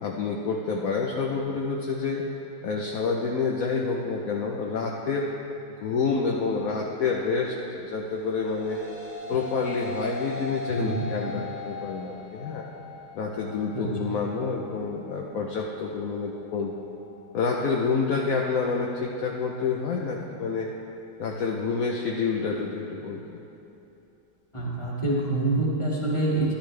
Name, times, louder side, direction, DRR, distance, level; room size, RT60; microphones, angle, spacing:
voice 1, 0.0-2.3 2.6-5.3 5.8-8.8 9.3-12.6 13.1-16.7 17.3-20.7 21.2-23.4, left 4 dB, 65° left, -1 dB, 0.9 m, -28 dB
sound 1, 8.1-17.3, left 2 dB, 35° left, 2.6 m, -40 dB
voice 2, 10.7-11.1 13.7-13.9 24.5-26.5, right 2 dB, 15° left, -6 dB, 1.8 m, -26 dB
13.0 x 12.0 x 3.3 m, 2.8 s
omnidirectional pair, 2.2 m